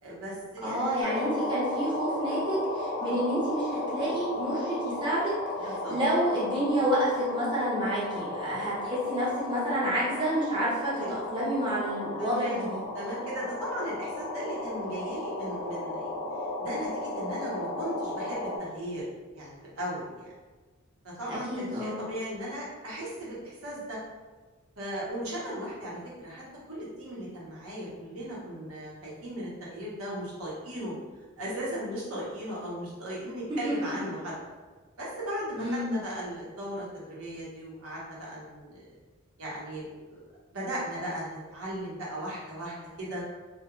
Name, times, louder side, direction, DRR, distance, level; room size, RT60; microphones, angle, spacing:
voice 1, 0.0-0.9 1.2-1.3 3.0-3.2 5.6-5.9 8.6-8.8 10.9-11.2 12.2-12.7 12.9-16.2 16.6-19.0 19.3-20.3 21.0-24.0 24.8-30.9 31.4-34.3 35.0-39.0 39.4-40.2 40.5-43.2, equal, 80° right, -6 dB, 0.9 m, -37 dB
voice 2, 0.6-5.3 5.9-10.9 11.3-12.8 21.3-22.0 33.6-33.7 35.6-35.9, equal, 20° right, -8 dB, 0.5 m, -29 dB
sound 1, 1.0-18.6, left 1 dB, 30° left, 0.5 m, -35 dB
2.3 x 2.2 x 2.9 m, 1.3 s
head